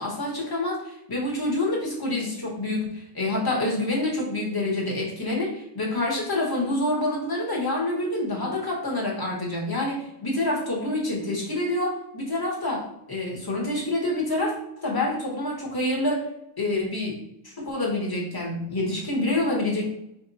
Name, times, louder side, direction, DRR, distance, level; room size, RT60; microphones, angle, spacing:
voice 1, 0.0-14.5 14.8-16.2 16.6-17.2 17.4-19.9, left 1 dB, 20° left, -3 dB, 1.1 m, -27 dB
4.7 x 2.5 x 4.0 m, 0.80 s
omnidirectional pair, 1.2 m